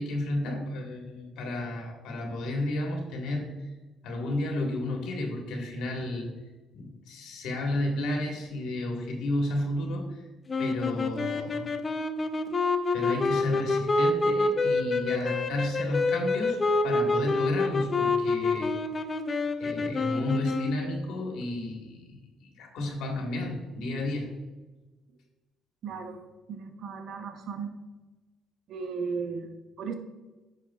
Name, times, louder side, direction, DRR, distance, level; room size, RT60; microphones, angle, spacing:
voice 1, 0.0-3.4 4.0-6.3 6.7-10.3 10.6-11.7 12.9-18.7 19.6-24.3, left 1 dB, 80° left, 1 dB, 1.5 m, -32 dB
sound 1, 10.5-21.0, left 3 dB, 25° left, 0.5 m, -27 dB
voice 2, 25.8-26.2 26.5-27.8 28.7-29.9, right 5 dB, 60° right, 6 dB, 0.8 m, -36 dB
9.4 x 6.4 x 2.3 m, 1.2 s
cardioid pair, 130°, 0 cm